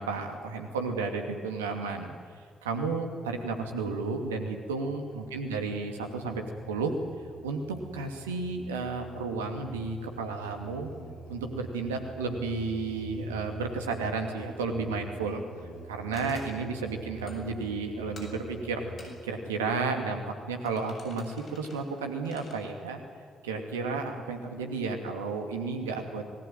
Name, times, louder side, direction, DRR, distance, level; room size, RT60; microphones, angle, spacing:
voice 1, 0.0-2.1 2.6-7.0 7.4-10.9 11.3-15.4 15.9-18.8 19.2-23.0 23.4-26.2, right 4 dB, 85° right, 4 dB, 2.6 m, -32 dB
Musical instrument, 5.0-19.6, right 4 dB, 80° left, 5.5 m, -46 dB
sound 1, 16.1-16.7 17.3-17.6 18.2-18.5 19.0-19.4 20.7-22.5, left 2 dB, 50° left, 7.2 m, -50 dB
27.0 x 19.5 x 9.3 m, 2.1 s
figure-of-eight pair, 40°, 0 cm